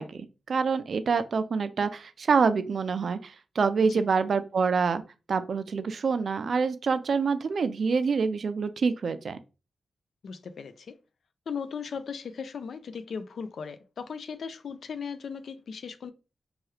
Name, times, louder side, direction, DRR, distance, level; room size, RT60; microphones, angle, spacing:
voice 1, 0.0-5.0 5.3-9.4, right 5 dB, 60° right, 0.3 m, -26 dB
voice 2, 10.2-11.0 11.5-16.1, left 6 dB, 70° left, 0.3 m, -37 dB
2.9 x 2.3 x 3.1 m
wide cardioid pair, 135°, 0 cm